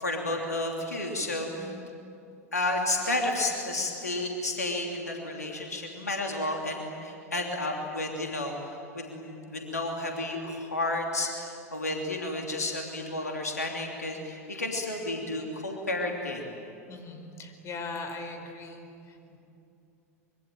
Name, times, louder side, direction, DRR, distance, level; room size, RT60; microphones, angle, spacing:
voice 1, 0.0-1.7 2.5-16.4, left 2 dB, 85° left, 1 dB, 3.1 m, -31 dB
voice 2, 1.6-1.9 16.9-19.4, left 3 dB, 35° left, 5 dB, 4.8 m, -40 dB
26.0 x 24.0 x 9.1 m, 2.7 s
figure-of-eight pair, 85°, 8 cm